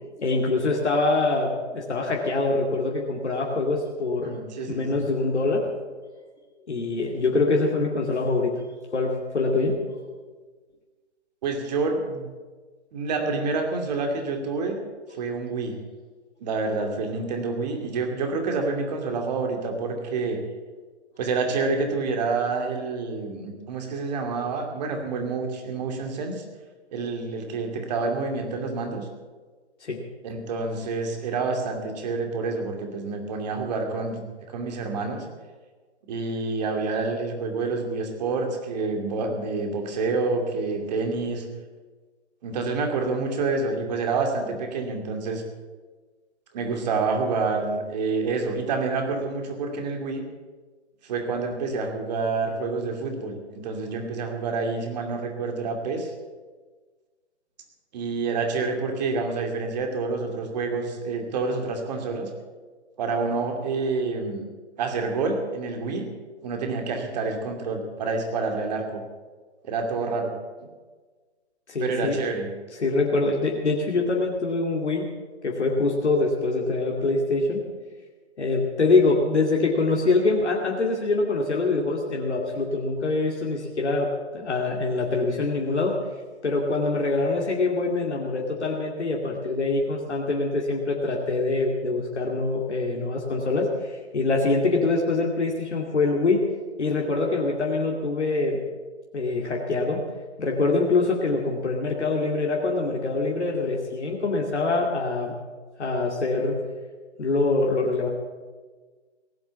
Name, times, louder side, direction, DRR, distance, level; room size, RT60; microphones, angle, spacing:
voice 1, 0.2-4.3 4.7-5.7 6.7-8.6 8.9-9.8 29.8-30.0 71.7-72.2 72.8-75.1 75.4-77.6 78.4-86.0 86.4-96.5 96.8-98.6 99.1-100.0 100.4-105.3 105.8-106.6 107.2-108.1, left 3 dB, 75° left, -1 dB, 2.5 m, -24 dB
voice 2, 4.2-5.0 11.4-12.3 12.9-14.8 15.2-15.8 16.4-20.4 21.2-26.4 26.9-29.1 30.2-35.3 36.1-41.5 42.4-45.4 46.5-50.2 51.0-56.1 57.9-62.3 63.0-64.5 64.8-66.1 66.4-69.0 69.6-70.3 71.8-72.5, right 4 dB, 40° right, 4 dB, 2.6 m, -28 dB
18.5 x 7.7 x 8.1 m, 1.4 s
hypercardioid pair, 145°, 34 cm